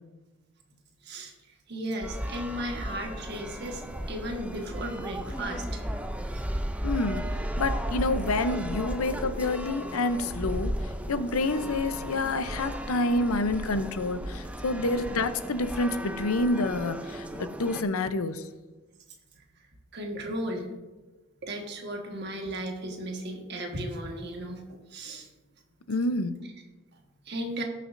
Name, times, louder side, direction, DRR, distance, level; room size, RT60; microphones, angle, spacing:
voice 1, 1.7-3.8 4.1-5.8 19.9-20.7 21.4-25.3 27.3-27.6, right 1 dB, 50° right, 2 dB, 1.5 m, -35 dB
sound 1, 2.0-17.8, equal, 5° right, 0.4 m, -35 dB
voice 2, 6.8-7.2 7.6-10.7 11.1-18.4 25.9-26.3, left 2 dB, 90° left, 11 dB, 0.6 m, -28 dB
18.0 x 6.7 x 2.6 m, 1.2 s
head